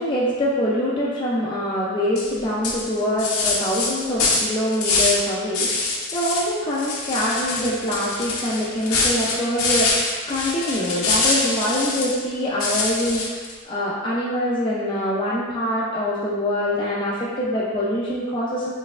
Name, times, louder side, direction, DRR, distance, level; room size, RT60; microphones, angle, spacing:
voice 1, 0.0-5.7 6.1-18.7, left 1 dB, 25° left, -7 dB, 0.4 m, -24 dB
sound 1, 2.2-2.3 2.6-5.3 5.5-6.5 6.8-12.2 12.6-13.5, left 3 dB, 80° left, 0.6 m, -24 dB
4.2 x 3.2 x 2.4 m, 1.5 s
head